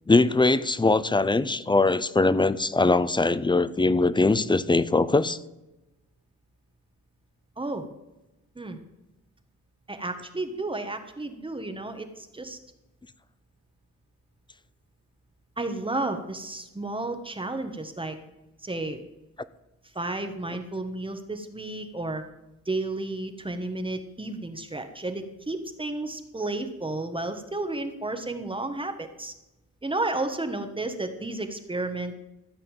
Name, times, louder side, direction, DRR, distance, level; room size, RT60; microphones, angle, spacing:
voice 1, 0.1-5.4, left 3 dB, 15° left, 16 dB, 0.6 m, -21 dB
voice 2, 7.6-7.9 8.5-8.8 9.9-12.6 15.6-18.2 18.6-19.0 19.9-22.2 22.7-29.3 29.8-32.1, right 2 dB, 20° right, 6 dB, 1.4 m, -32 dB
15.0 x 5.5 x 9.0 m, 0.96 s
cardioid pair, 100°, 29 cm